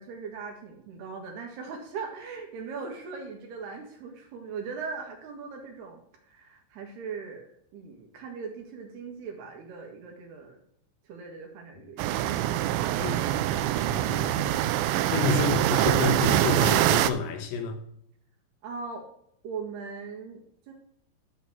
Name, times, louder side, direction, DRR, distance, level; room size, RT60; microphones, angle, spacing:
voice 1, 0.0-10.6 11.0-12.2 18.6-19.1 19.4-20.7, right 5 dB, 65° right, 3.3 m, -40 dB
sound 1, 12.0-17.1, right 12 dB, 85° right, 2.7 m, -24 dB
voice 2, 13.8-14.5 15.1-17.8, left 4 dB, 90° left, 4.1 m, -29 dB
13.0 x 4.5 x 6.9 m
omnidirectional pair, 5.7 m